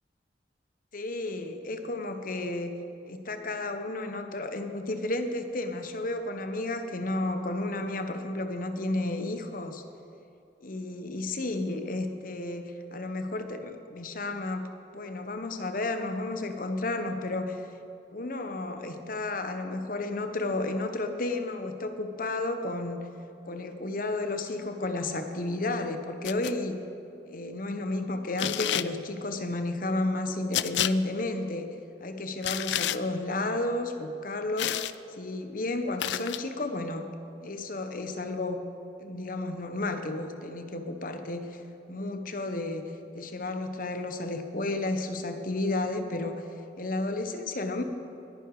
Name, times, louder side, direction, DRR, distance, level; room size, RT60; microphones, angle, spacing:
voice 1, 0.9-2.8 3.0-9.8 10.6-17.7 18.1-23.1 23.4-26.8 27.3-31.7 32.0-37.1 37.4-38.6 39.0-41.6 41.9-42.8 43.1-46.5 46.8-47.8, left 2 dB, 50° left, 7 dB, 1.1 m, -32 dB
sound 1, 26.2-26.5 28.4-28.9 30.5-30.9 32.4-33.0 34.6-34.9 36.0-36.4, left 12 dB, 85° left, 0.4 m, -29 dB
21.0 x 10.0 x 4.9 m, 2.6 s
head